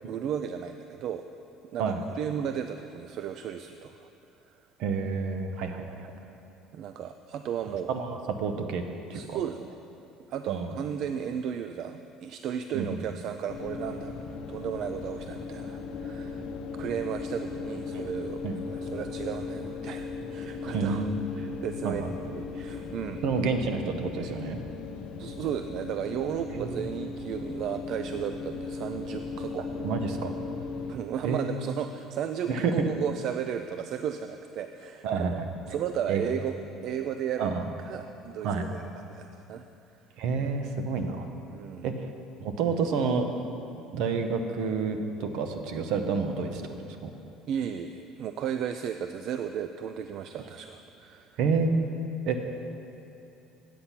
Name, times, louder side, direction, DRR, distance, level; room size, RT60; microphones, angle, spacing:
voice 1, 0.1-1.3 1.7-4.1 4.5-4.7 6.7-7.9 9.1-9.8 10.3-16.5 16.8-18.4 18.7-23.2 25.2-29.9 30.9-37.5 37.8-39.7 41.5-41.9 47.5-51.4, right 8 dB, 55° right, 8 dB, 0.3 m, -34 dB
voice 2, 4.8-6.1 7.9-8.8 9.1-9.4 10.5-10.7 12.7-13.0 18.4-18.6 20.7-21.3 21.8-22.0 23.2-24.6 26.5-26.8 29.8-30.3 31.2-31.6 32.5-32.9 35.0-35.4 36.1-36.2 37.4-37.6 38.4-38.6 40.2-41.3 41.8-41.9 42.4-43.2 43.9-46.6 47.0-47.1 51.4-51.9 52.3-52.4, right 5 dB, 70° right, 6 dB, 0.8 m, -29 dB
sound 1, 13.5-30.9, left 4 dB, 70° left, 0.8 m, -37 dB
8.7 x 8.1 x 5.8 m, 2.8 s
cardioid pair, 140°, 0 cm